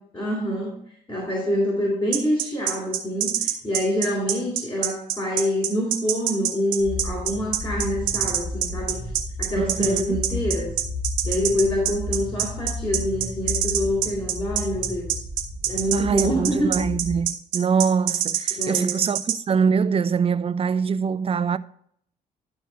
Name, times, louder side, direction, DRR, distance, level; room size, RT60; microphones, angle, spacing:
voice 1, 0.1-0.7 1.1-9.0 9.4-10.7 11.2-15.1 15.7-16.7 18.5-19.0, equal, 25° left, 3.3 m, -26 dB
sound 1, 2.1-19.4, right 11 dB, 75° right, 0.8 m, -25 dB
sound 2, 6.8-17.2, left 2 dB, 75° left, 3.3 m, -33 dB
voice 2, 9.6-10.2 15.9-21.6, right 6 dB, 30° right, 0.4 m, -24 dB
11.5 x 4.6 x 4.5 m
hypercardioid pair, 45°, 20 cm